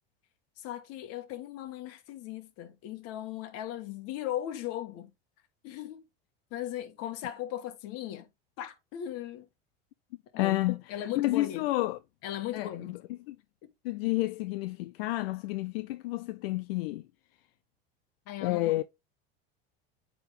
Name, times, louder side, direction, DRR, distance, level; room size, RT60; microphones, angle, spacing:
voice 1, 0.6-5.1 5.6-6.0 6.5-8.3 8.6-9.5 10.3-11.6 12.2-12.9 18.3-18.8, left 12 dB, 55° left, 1.5 m, -38 dB
voice 2, 10.4-12.0 12.5-13.4 13.8-17.1 18.4-18.8, left 18 dB, 85° left, 0.5 m, -30 dB
8.5 x 3.5 x 3.5 m
supercardioid pair, 105°, 29 cm